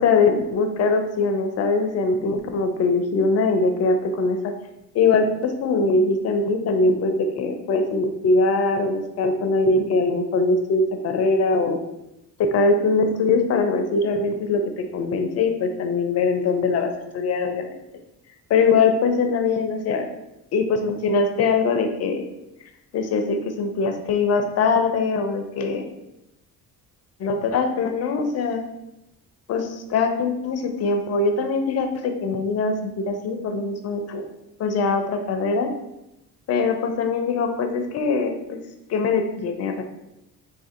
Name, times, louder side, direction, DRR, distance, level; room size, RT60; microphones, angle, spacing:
voice 1, 0.0-4.5 4.9-11.8 12.4-17.7 18.5-20.1 20.5-22.2 22.9-25.9 27.2-28.6 29.5-34.2 34.6-35.7 36.5-38.6 38.9-39.8, left 3 dB, 35° left, 6 dB, 0.4 m, -22 dB
2.5 x 2.4 x 2.4 m, 0.90 s
hypercardioid pair, 45°, 49 cm